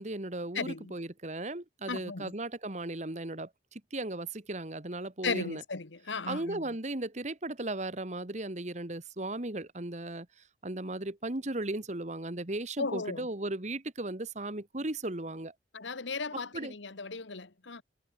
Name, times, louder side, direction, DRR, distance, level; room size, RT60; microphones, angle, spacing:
voice 1, 0.0-5.6 6.3-10.3 10.6-15.5 16.3-16.7, right 2 dB, 40° right, 1.6 m, -36 dB
voice 2, 0.5-0.9 1.9-2.3 5.2-6.6 12.8-13.3 15.7-17.8, left 4 dB, 90° left, 1.5 m, -36 dB
head